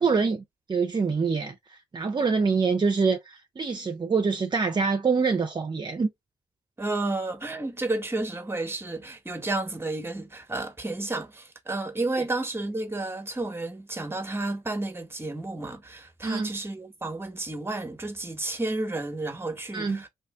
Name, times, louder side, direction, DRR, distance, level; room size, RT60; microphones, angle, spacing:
voice 1, 0.0-6.1 16.2-16.5 19.7-20.0, right 5 dB, 40° right, 0.7 m, -25 dB
voice 2, 6.8-20.1, right 2 dB, 20° right, 1.1 m, -31 dB
2.9 x 2.5 x 3.3 m
supercardioid pair, 45°, 12 cm